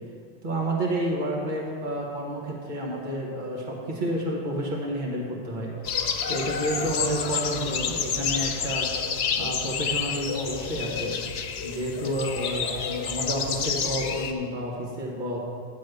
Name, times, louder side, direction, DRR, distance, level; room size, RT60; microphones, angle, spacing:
voice 1, 0.4-5.7 6.3-8.9 9.4-11.1 11.6-15.4, right 1 dB, 50° right, -2 dB, 1.5 m, -30 dB
sound 1, 5.8-14.3, left 6 dB, 80° left, 0.9 m, -29 dB
11.0 x 4.2 x 7.8 m, 2.1 s
omnidirectional pair, 1.1 m